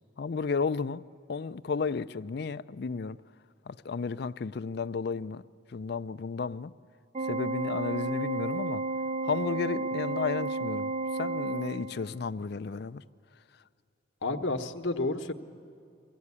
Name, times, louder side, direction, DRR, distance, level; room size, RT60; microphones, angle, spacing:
voice 1, 0.2-1.0 1.3-3.2 3.7-5.4 5.7-6.7 7.2-8.8 9.2-10.9 11.2-13.0, left 5 dB, 55° left, 0.4 m, -33 dB
Organ, 7.1-12.2, right 3 dB, 35° right, 0.5 m, -32 dB
voice 2, 14.2-15.3, left 2 dB, 80° left, 1.2 m, -30 dB
23.0 x 16.5 x 9.7 m
head